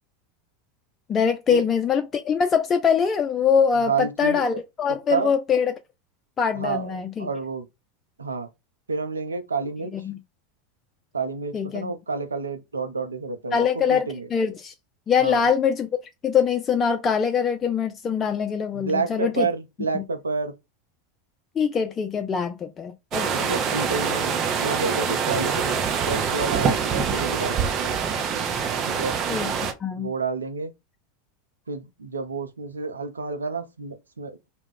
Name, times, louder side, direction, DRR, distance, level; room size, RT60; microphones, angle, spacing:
voice 1, 1.1-5.7 6.4-7.3 9.9-10.2 11.5-11.9 13.5-14.7 15.1-15.9 16.2-19.5 19.9-20.0 21.6-23.5 29.3-29.5 29.8-30.1, left 7 dB, 30° left, 0.4 m, -23 dB
voice 2, 3.9-4.6 5.1-5.3 6.5-7.7 8.2-8.5 8.9-9.9 11.1-14.3 15.2-15.5 18.7-20.5 23.3-25.8 26.1-27.9 28.9-29.2 30.0-30.7 31.7-34.5, right 4 dB, 90° right, 0.5 m, -29 dB
sound 1, 23.1-29.7, right 6 dB, 40° right, 0.6 m, -25 dB
2.3 x 2.1 x 3.4 m
hypercardioid pair, 85°, 0 cm